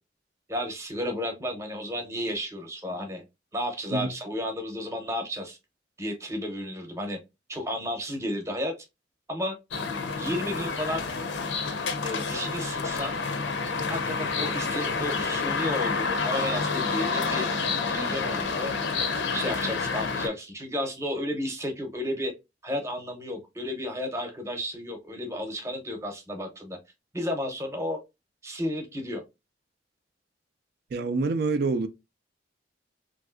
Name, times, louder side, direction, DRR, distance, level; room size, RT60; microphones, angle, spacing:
voice 1, 0.5-3.2 3.5-5.6 6.0-7.2 7.5-8.7 9.3-9.6 10.2-11.0 12.0-13.1 13.9-17.5 17.9-18.7 19.3-22.3 22.6-26.8 27.1-28.0 28.4-29.2, left 1 dB, 15° right, 0.7 m, -32 dB
sound 1, 9.7-20.3, left 4 dB, 80° left, 0.6 m, -29 dB
voice 2, 30.9-31.9, right 3 dB, 60° right, 0.3 m, -26 dB
3.2 x 2.5 x 2.4 m
head